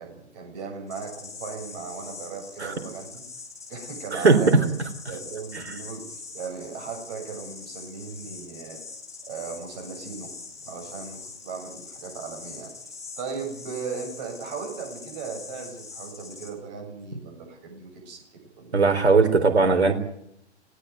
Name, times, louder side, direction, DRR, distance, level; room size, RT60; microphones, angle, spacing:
voice 1, 0.0-3.2 3.7-4.6 5.1-8.8 9.2-10.3 10.6-12.7 13.2-18.8, right 5 dB, 40° right, 2 dB, 7.7 m, -37 dB
sound 1, 0.9-16.5, left 4 dB, 10° left, 3.4 m, -43 dB
voice 2, 18.7-19.9, right 4 dB, 70° right, 7 dB, 3.8 m, -18 dB
18.5 x 18.0 x 9.6 m, 0.74 s
figure-of-eight pair, 120°, 34 cm